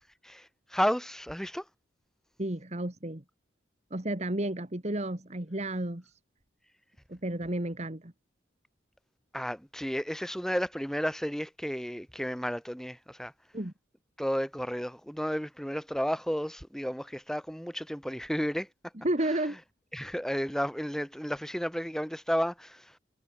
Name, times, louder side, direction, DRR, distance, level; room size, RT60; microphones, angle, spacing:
voice 1, 0.7-1.6 9.3-13.3 14.2-18.7 19.9-22.8, equal, ahead, 5.6 m, -32 dB
voice 2, 2.4-3.2 3.9-6.0 7.1-8.1 13.5-13.7 19.0-19.6, right 1 dB, 35° right, 1.8 m, -32 dB
head